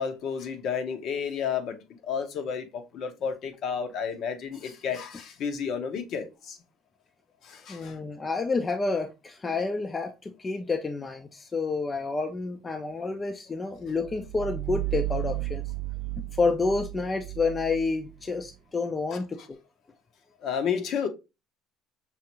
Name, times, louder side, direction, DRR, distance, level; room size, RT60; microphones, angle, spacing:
voice 1, 0.0-6.6 7.4-8.0 20.4-21.1, left 7 dB, 55° left, 0.8 m, -31 dB
voice 2, 7.7-15.6 16.2-19.6, left 3 dB, 20° left, 0.4 m, -29 dB
sound 1, 13.8-18.5, right 20 dB, 45° right, 0.4 m, -34 dB
5.5 x 2.5 x 2.9 m
cardioid pair, 130°, 0 cm